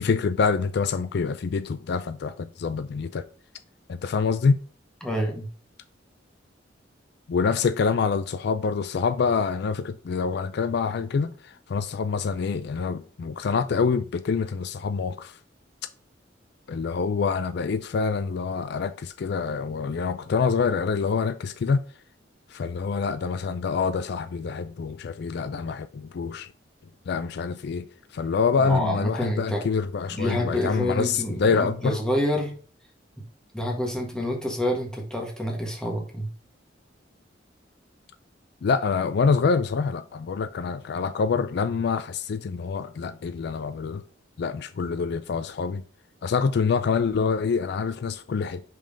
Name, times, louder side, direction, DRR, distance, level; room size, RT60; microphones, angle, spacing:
voice 1, 0.0-3.2 3.9-4.6 7.3-15.4 16.7-21.8 22.5-26.5 27.1-27.9 28.1-32.0 38.6-44.0 44.4-45.8 46.2-48.6, left 5 dB, 60° left, 0.4 m, -26 dB
voice 2, 5.0-5.5 28.6-29.6 30.1-32.6 33.5-36.3, equal, 5° left, 1.5 m, -28 dB
5.3 x 3.7 x 5.1 m
head